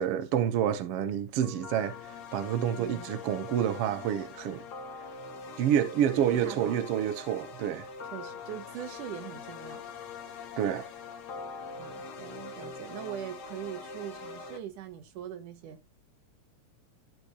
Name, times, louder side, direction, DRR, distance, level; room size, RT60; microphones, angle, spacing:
voice 1, 0.0-4.6 5.6-7.9 10.6-10.9, right 9 dB, 60° right, 1.7 m, -28 dB
sound 1, 1.4-14.6, left 4 dB, 80° left, 0.9 m, -43 dB
voice 2, 2.8-3.2 6.3-6.8 8.1-9.9 11.8-15.8, right 10 dB, 80° right, 2.6 m, -42 dB
13.0 x 4.7 x 3.1 m
omnidirectional pair, 3.6 m